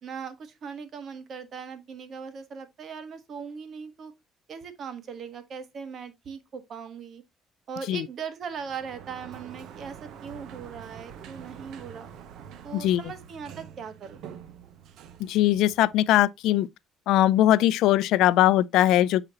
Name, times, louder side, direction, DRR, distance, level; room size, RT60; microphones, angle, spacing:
voice 1, 0.0-4.1 4.5-7.2 7.7-12.1 12.6-14.2, right 6 dB, 55° right, 1.3 m, -39 dB
Sliding door, 8.5-16.3, right 8 dB, 70° right, 0.8 m, -46 dB
voice 2, 15.2-16.7 17.1-19.2, left 14 dB, 80° left, 0.3 m, -20 dB
7.6 x 4.9 x 2.8 m
cardioid pair, 105°, 0 cm